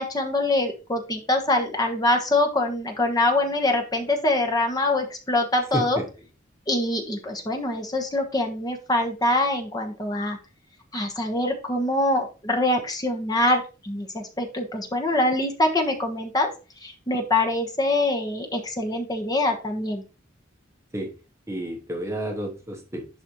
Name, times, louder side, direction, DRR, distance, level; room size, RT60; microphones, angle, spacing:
voice 1, 0.0-6.0 6.7-10.4 10.9-16.5 16.8-20.0, left 2 dB, 20° left, 2 dB, 1.3 m, -24 dB
voice 2, 5.7-6.1 20.9-21.1 21.5-23.1, right 1 dB, 15° right, 2 dB, 1.1 m, -30 dB
11.0 x 4.2 x 3.1 m, 0.33 s
head